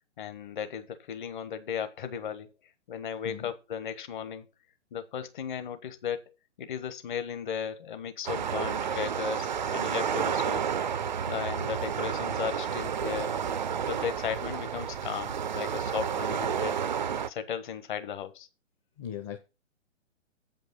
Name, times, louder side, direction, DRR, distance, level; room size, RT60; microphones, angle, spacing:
voice 1, 0.2-2.5 2.9-4.5 4.9-6.2 6.6-10.7 11.3-13.3 13.8-16.8 17.3-18.5, left 8 dB, 40° left, 1.3 m, -36 dB
sound 1, 8.2-17.3, right 7 dB, 40° right, 0.4 m, -31 dB
voice 2, 19.0-19.4, left 9 dB, 20° left, 0.8 m, -38 dB
7.9 x 5.3 x 6.1 m
figure-of-eight pair, 135°, 39 cm